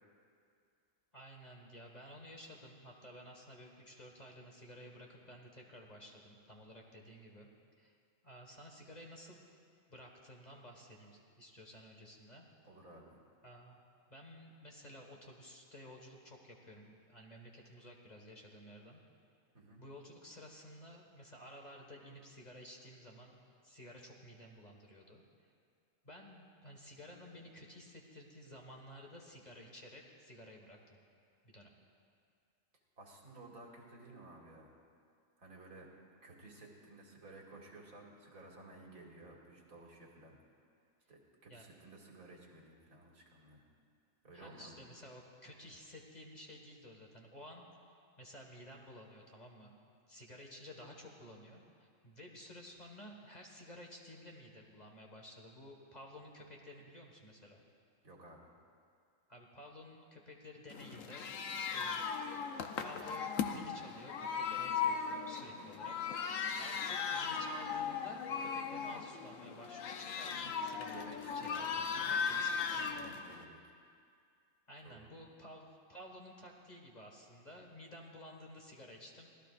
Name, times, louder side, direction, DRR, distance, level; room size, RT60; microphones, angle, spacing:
voice 1, 1.1-7.5 7.8-7.9 8.2-9.4 9.9-12.5 13.4-13.8 14.1-19.0 19.8-25.5 26.0-31.0 31.4-31.7 41.5-41.7 44.3-47.7 48.2-49.8 50.1-57.6 59.3-62.0 62.8-66.0 66.3-73.0 74.7-79.3, equal, 30° left, 0 dB, 1.7 m, -53 dB
voice 2, 12.6-13.2 19.5-19.8 33.0-34.7 35.4-35.9 36.2-40.4 41.1-43.6 44.2-44.9 58.0-58.5 70.8-71.7 72.0-72.6 73.0-73.6 74.8-75.2, right 2 dB, 85° right, -2 dB, 2.5 m, -55 dB
sound 1, 60.7-73.4, left 6 dB, 70° left, 1.1 m, -38 dB
25.0 x 17.0 x 2.5 m, 2.3 s
omnidirectional pair, 1.4 m